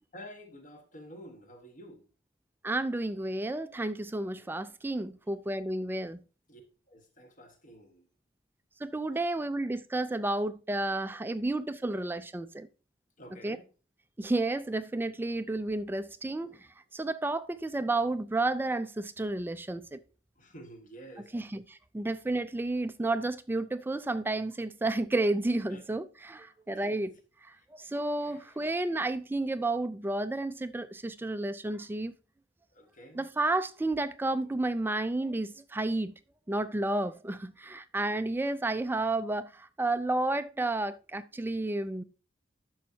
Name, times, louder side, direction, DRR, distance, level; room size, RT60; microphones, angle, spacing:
voice 1, 0.1-2.0 6.5-6.6 6.9-8.0 13.2-13.7 20.4-21.3 25.7-25.8 26.7-27.2 28.2-28.6 32.7-33.2, equal, 45° left, 1.4 m, -50 dB
voice 2, 2.6-6.2 8.8-12.7 13.4-13.6 14.2-16.5 16.9-20.0 21.3-27.1 27.7-32.1 33.1-36.1 36.5-42.0, right 2 dB, 10° right, 0.3 m, -31 dB
11.0 x 6.4 x 2.7 m
head